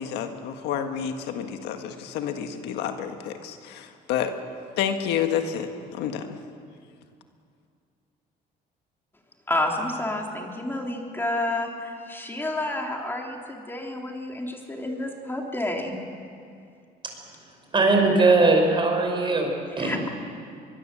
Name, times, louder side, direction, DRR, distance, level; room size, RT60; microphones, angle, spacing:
voice 1, 0.0-4.3 4.8-6.4, left 8 dB, 90° left, 6 dB, 1.7 m, -29 dB
voice 2, 9.5-16.0 19.8-20.1, left 1 dB, 15° left, 1 dB, 3.5 m, -30 dB
voice 3, 17.7-20.0, right 3 dB, 30° right, 2 dB, 5.5 m, -20 dB
23.5 x 22.5 x 7.6 m, 2.3 s
cardioid pair, 110°, 17 cm